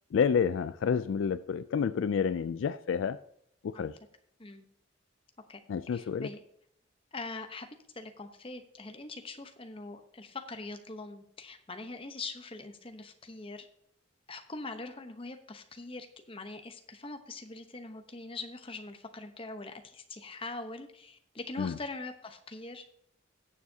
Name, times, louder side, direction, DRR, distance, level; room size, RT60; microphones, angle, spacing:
voice 1, 0.1-3.2 3.6-4.0 5.7-6.3 21.6-21.8, left 6 dB, 65° left, 15 dB, 0.3 m, -29 dB
voice 2, 5.9-6.4 7.1-7.7 7.9-13.7 14.3-22.8, left 3 dB, 25° left, 6 dB, 0.9 m, -43 dB
17.5 x 7.1 x 2.8 m, 0.71 s
head